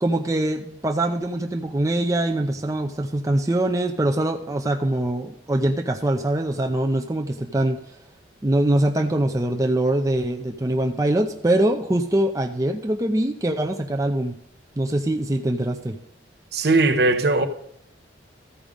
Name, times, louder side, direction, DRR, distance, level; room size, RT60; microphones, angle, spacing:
voice 1, 0.0-7.8 8.4-14.4 14.8-16.0, right 1 dB, 20° right, 0.5 m, -23 dB
voice 2, 16.5-17.5, right 2 dB, 55° right, 0.9 m, -19 dB
14.0 x 5.1 x 5.1 m
head